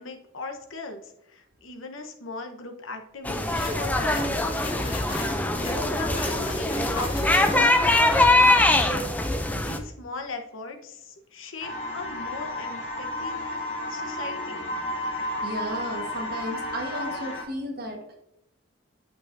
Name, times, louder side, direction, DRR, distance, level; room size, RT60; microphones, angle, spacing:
voice 1, 0.0-5.0 5.7-14.7, left 3 dB, 80° left, 5 dB, 1.0 m, -39 dB
sound 1, 3.2-9.8, left 2 dB, 10° left, 0.5 m, -22 dB
sound 2, 3.5-7.9, left 3 dB, 40° left, 2.4 m, -38 dB
sound 3, 11.6-17.4, left 1 dB, 60° left, 2.0 m, -32 dB
voice 2, 15.4-18.1, right 1 dB, 50° right, 2 dB, 1.5 m, -33 dB
8.9 x 6.6 x 2.7 m, 0.83 s
head